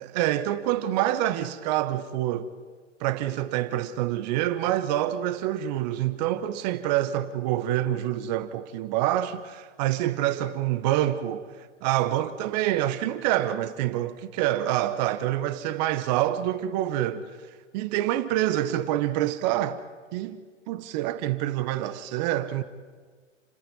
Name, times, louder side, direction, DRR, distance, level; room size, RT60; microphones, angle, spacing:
voice 1, 0.0-2.5 3.0-11.4 11.8-17.3 17.7-19.8 20.1-20.4 20.7-22.6, right 13 dB, 35° right, 1.2 m, -26 dB
29.0 x 10.5 x 9.9 m
hypercardioid pair, 120°, 37 cm